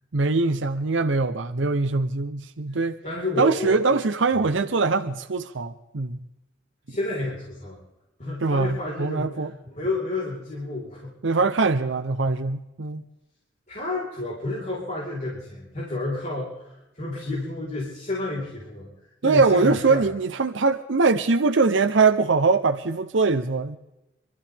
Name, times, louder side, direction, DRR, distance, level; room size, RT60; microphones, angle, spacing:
voice 1, 0.1-3.0 3.4-6.2 8.4-9.5 11.2-13.0 19.2-23.8, right 4 dB, 70° right, 0.8 m, -22 dB
voice 2, 3.0-4.0 6.9-7.8 8.2-11.4 13.7-18.9 19.2-20.0, left 2 dB, 40° left, 4.5 m, -31 dB
25.5 x 13.5 x 3.5 m
head